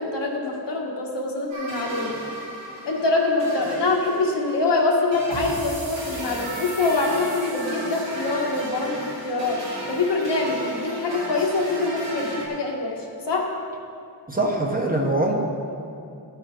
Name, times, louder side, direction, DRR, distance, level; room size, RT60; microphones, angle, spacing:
voice 1, 0.0-2.1 2.8-9.6 9.9-12.9 13.3-13.5, left 3 dB, 70° left, -2 dB, 1.7 m, -24 dB
sound 1, 1.5-12.5, right 1 dB, 80° right, 2.8 m, -35 dB
voice 2, 14.3-15.3, right 2 dB, 20° right, 0 dB, 1.2 m, -23 dB
13.5 x 9.0 x 4.0 m, 2.6 s
wide cardioid pair, 135°, 43 cm